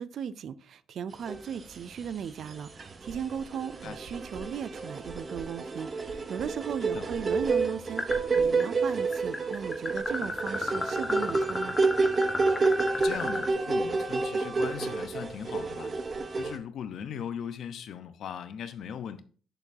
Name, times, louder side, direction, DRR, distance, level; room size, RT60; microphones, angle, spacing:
voice 1, 0.0-11.8, right 8 dB, 60° right, 0.4 m, -37 dB
sound 1, 1.3-2.1 2.4-16.6, right 3 dB, 30° right, 0.8 m, -29 dB
sound 2, 3.1-3.6 4.1-8.7, equal, 90° right, 1.8 m, -48 dB
sound 3, 8.0-8.6 8.9-13.5, left 2 dB, 20° left, 1.1 m, -33 dB
voice 2, 12.9-15.9 16.4-19.2, left 8 dB, 65° left, 0.8 m, -39 dB
8.2 x 6.8 x 2.7 m
cardioid pair, 120°, 0 cm